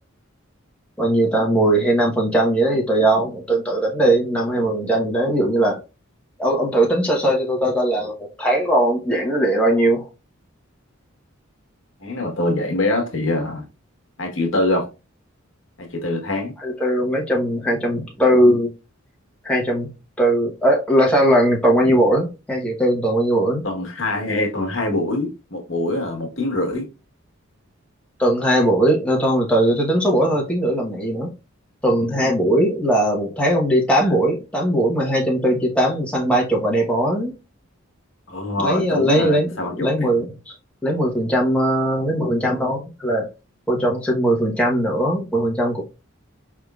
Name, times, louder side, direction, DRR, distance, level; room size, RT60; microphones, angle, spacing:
voice 1, 1.0-5.8 6.4-10.0 16.6-18.7 19.4-19.9 20.2-23.6 28.2-31.3 31.8-37.3 38.6-40.5 40.8-43.3 43.7-45.8, right 1 dB, 5° left, 1.1 m, -19 dB
voice 2, 12.0-13.6 14.2-14.9 15.8-16.5 23.6-26.9 38.3-40.1, left 2 dB, 65° left, 1.2 m, -24 dB
4.8 x 3.5 x 2.4 m
head